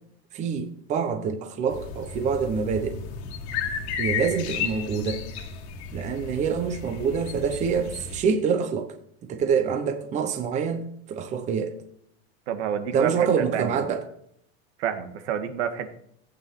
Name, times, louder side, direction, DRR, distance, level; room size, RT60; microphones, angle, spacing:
voice 1, 0.3-3.0 4.0-5.3 5.9-8.9 9.3-11.8 12.9-14.0, right 6 dB, 20° right, 0.9 m, -26 dB
sound 1, 1.7-8.2, left 6 dB, 75° left, 2.1 m, -33 dB
voice 2, 12.5-13.3 13.5-13.8 14.8-15.9, right 9 dB, 80° right, 1.9 m, -28 dB
15.0 x 8.6 x 4.6 m
supercardioid pair, 170°, 34 cm